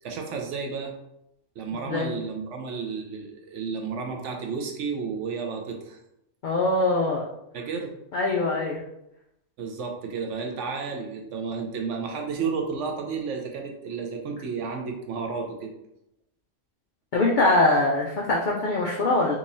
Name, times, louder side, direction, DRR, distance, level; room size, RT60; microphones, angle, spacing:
voice 1, 0.0-0.9 1.6-6.0 7.5-7.9 9.6-15.7, right 5 dB, 70° right, 2 dB, 0.9 m, -32 dB
voice 2, 6.4-7.3 8.1-8.8 17.1-19.3, left 2 dB, 70° left, -1 dB, 0.4 m, -23 dB
3.7 x 2.9 x 2.6 m, 0.83 s
omnidirectional pair, 1.4 m